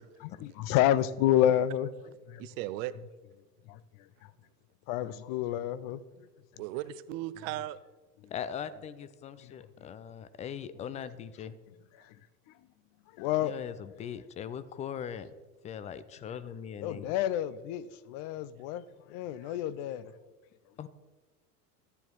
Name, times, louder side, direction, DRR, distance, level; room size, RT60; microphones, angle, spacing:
voice 1, 0.2-1.9 2.3-2.4 3.7-3.8 4.9-6.0 12.1-12.2 13.2-13.6 16.8-20.1, left 12 dB, 45° left, 0.8 m, -29 dB
voice 2, 2.4-2.9 6.6-7.8 19.4-19.6, right 15 dB, 50° right, 0.8 m, -37 dB
voice 3, 8.3-11.5 13.4-15.3 15.6-17.1 20.8-20.9, left 8 dB, 15° left, 0.4 m, -40 dB
13.5 x 9.7 x 4.6 m
hypercardioid pair, 85°, 49 cm